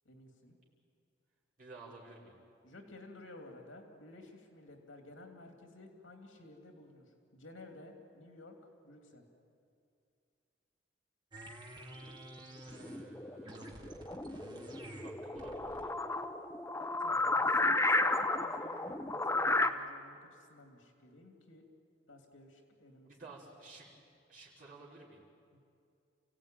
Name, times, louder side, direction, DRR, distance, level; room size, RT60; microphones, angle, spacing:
voice 1, 0.0-0.5 2.6-8.5 8.8-9.2 17.0-21.6 22.1-23.1 25.5-25.6, left 2 dB, 85° left, 3 dB, 2.8 m, -54 dB
voice 2, 1.6-2.3 12.6-14.2 15.0-15.9 23.0-23.9 24.3-25.2, right 3 dB, 45° right, -6 dB, 5.3 m, -54 dB
sound 1, 11.3-13.1 13.4-16.0, right 1 dB, 25° right, 2.1 m, -50 dB
sound 2, 12.7-19.7, left 2 dB, 15° left, 0.7 m, -33 dB
29.0 x 16.5 x 9.2 m, 2.4 s
head